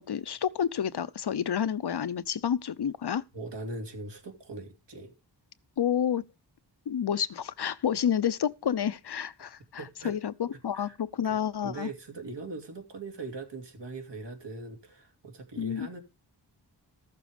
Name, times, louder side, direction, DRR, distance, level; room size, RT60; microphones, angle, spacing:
voice 1, 0.0-3.2 5.8-6.2 6.9-11.9 15.6-15.9, left 8 dB, 70° left, 0.8 m, -29 dB
voice 2, 3.3-5.1 9.8-10.1 10.7-11.0 11.2-16.0, right 3 dB, 80° right, 2.9 m, -41 dB
14.5 x 6.8 x 5.2 m
wide cardioid pair, 70°, 42 cm